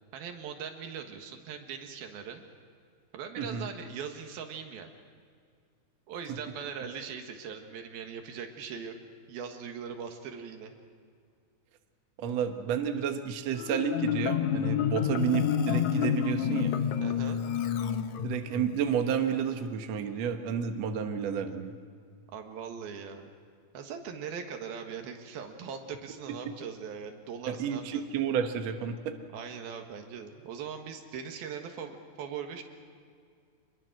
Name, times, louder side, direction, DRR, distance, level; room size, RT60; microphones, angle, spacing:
voice 1, 0.1-2.4 3.1-4.9 6.1-8.9 9.3-10.8 17.0-17.4 22.3-23.3 23.7-28.0 29.3-32.6, right 7 dB, 85° right, 4 dB, 3.5 m, -40 dB
voice 2, 3.4-3.7 6.3-6.4 12.2-16.8 18.2-21.8 26.5-26.6 27.5-29.2, right 7 dB, 60° right, 5 dB, 2.0 m, -31 dB
Marimba xylophone, 13.6-18.7, left 9 dB, 70° left, 1.9 m, -29 dB
26.0 x 22.0 x 6.3 m, 2.2 s
omnidirectional pair, 4.3 m